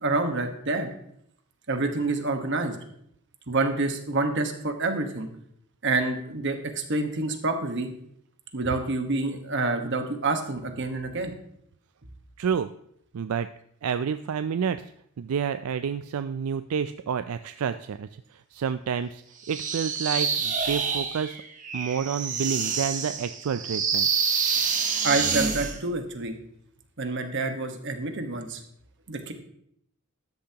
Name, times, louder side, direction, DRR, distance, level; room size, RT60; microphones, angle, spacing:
voice 1, 0.0-0.9 1.7-2.7 3.5-5.3 5.8-7.9 8.5-11.3 25.0-26.3 27.0-28.6 29.1-29.3, right 3 dB, 55° right, 6 dB, 1.4 m, -27 dB
voice 2, 12.4-12.7 13.1-13.5 13.8-14.8 15.2-18.1 18.5-19.2 19.5-21.4 21.7-24.1, right 7 dB, 80° right, 11 dB, 0.4 m, -29 dB
sound 1, 19.4-25.8, right 6 dB, 35° right, 1.3 m, -27 dB
13.0 x 10.5 x 2.9 m, 0.71 s
head